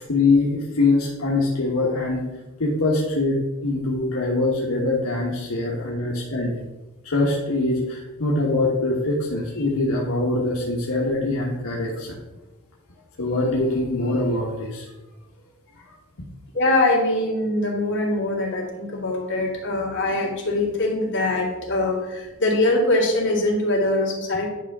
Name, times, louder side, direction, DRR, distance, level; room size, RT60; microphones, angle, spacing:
voice 1, 0.0-2.3 2.6-6.6 7.0-12.1 13.2-14.9, left 2 dB, 80° left, -4 dB, 1.3 m, -23 dB
voice 2, 16.5-24.5, left 2 dB, 60° left, -3 dB, 2.4 m, -22 dB
10.0 x 5.5 x 3.6 m, 1.1 s
head